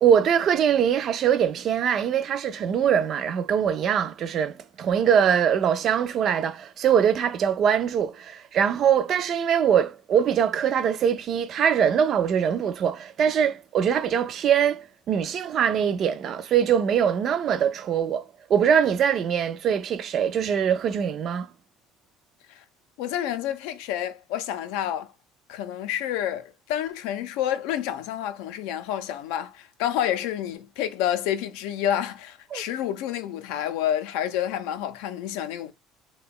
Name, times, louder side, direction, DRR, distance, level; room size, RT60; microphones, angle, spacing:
voice 1, 0.0-21.5 32.5-32.6, right 8 dB, 45° right, 0.3 m, -23 dB
voice 2, 23.0-25.1 25.5-35.7, left 11 dB, 90° left, 0.4 m, -29 dB
2.8 x 2.2 x 3.6 m
cardioid pair, 130°, 0 cm